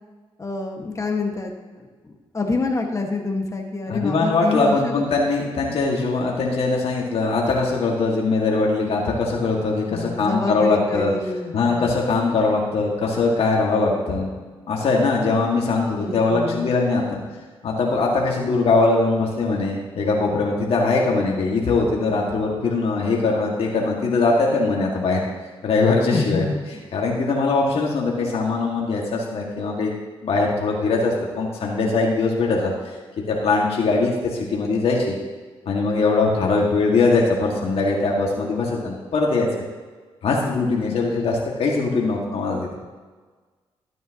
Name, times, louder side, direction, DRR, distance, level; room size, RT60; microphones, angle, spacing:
voice 1, 0.4-1.9 2.3-5.0 9.9-11.9 16.0-16.7 26.1-26.8, left 3 dB, 30° left, 2 dB, 1.6 m, -27 dB
voice 2, 3.9-11.1 11.5-14.3 14.7-17.2 17.6-25.2 25.6-26.4 26.9-29.9 30.2-32.7 33.3-35.1 35.7-39.5 40.2-42.7, left 3 dB, 70° left, -2 dB, 1.9 m, -21 dB
13.0 x 9.1 x 3.0 m, 1.4 s
cardioid pair, 70°, 11 cm